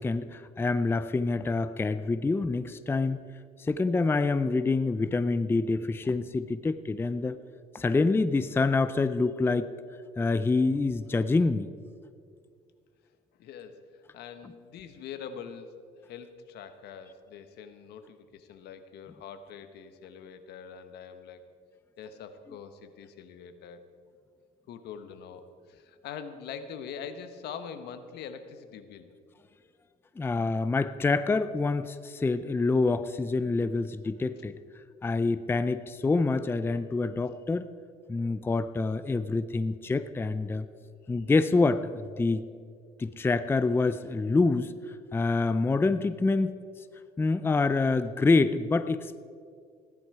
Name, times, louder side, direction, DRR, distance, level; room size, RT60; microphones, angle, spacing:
voice 1, 0.0-3.2 3.6-7.4 7.7-9.7 10.2-11.7 30.2-34.6 35.0-37.7 38.1-40.7 41.1-42.4 43.0-46.6 47.2-49.2, left 3 dB, 15° left, 13 dB, 0.4 m, -26 dB
voice 2, 13.4-21.4 22.0-23.8 24.7-29.1 41.0-41.3, left 7 dB, 75° left, 9 dB, 1.1 m, -44 dB
16.0 x 11.0 x 4.8 m, 2.2 s
cardioid pair, 110°, 17 cm